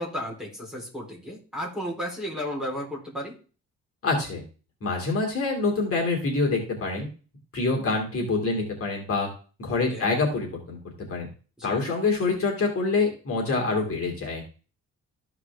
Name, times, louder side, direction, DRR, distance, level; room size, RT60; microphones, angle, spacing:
voice 1, 0.0-3.4 9.9-10.1 11.6-11.8, equal, ahead, -4 dB, 3.4 m, -33 dB
voice 2, 4.0-4.4 4.8-7.1 7.5-9.3 9.6-10.8 11.1-11.3 11.6-14.4, left 3 dB, 45° left, 0 dB, 2.6 m, -26 dB
13.5 x 4.9 x 3.5 m, 0.37 s
wide cardioid pair, 155°, 30 cm